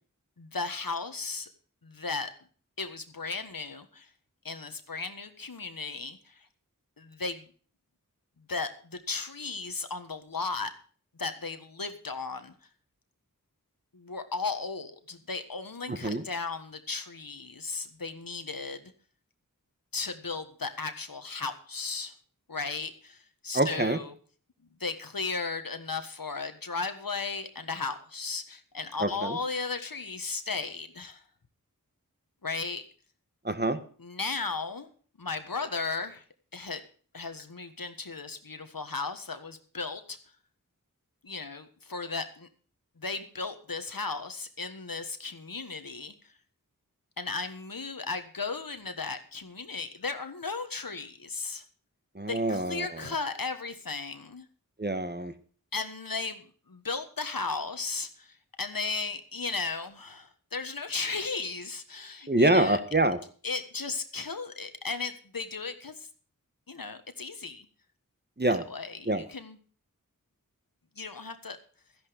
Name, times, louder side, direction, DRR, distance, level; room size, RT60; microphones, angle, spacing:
voice 1, 0.4-1.5 1.8-2.3 2.8-4.1 4.4-6.5 7.0-7.4 8.5-10.7 11.1-12.5 13.9-18.9 19.9-22.1 22.5-24.1 24.8-31.2 32.4-32.8 34.0-34.9 35.2-36.2 36.5-36.8 37.1-40.2 41.2-42.5 43.0-46.3 47.2-51.6 52.3-54.5 55.7-62.8 63.4-66.1 66.7-67.7 68.5-69.6 70.9-71.6, left 4 dB, 80° left, 9 dB, 1.5 m, -35 dB
voice 2, 15.9-16.2 23.5-24.0 29.0-29.4 33.4-33.8 52.1-52.9 54.8-55.3 62.3-63.2 68.4-68.6 69.1-69.2, right 1 dB, 30° right, 10 dB, 1.4 m, -25 dB
13.5 x 10.5 x 5.2 m, 0.42 s
wide cardioid pair, 45°, 34 cm